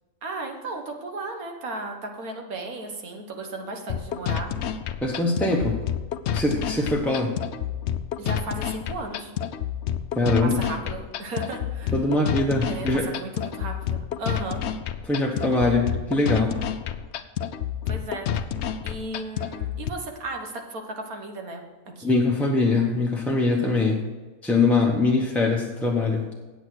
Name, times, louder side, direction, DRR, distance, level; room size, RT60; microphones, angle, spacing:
voice 1, 0.2-4.5 6.8-6.9 8.2-9.3 10.4-12.0 12.7-14.6 17.9-18.3 18.8-22.2, right 2 dB, 85° right, 3 dB, 1.8 m, -35 dB
sound 1, 3.9-19.9, left 9 dB, 65° left, 0.7 m, -29 dB
voice 2, 5.0-5.8 6.3-7.3 10.1-10.6 11.9-13.1 15.1-16.5 22.0-24.0 24.4-26.2, left 2 dB, ahead, -1 dB, 0.6 m, -22 dB
8.4 x 8.1 x 6.3 m, 1.2 s
omnidirectional pair, 1.5 m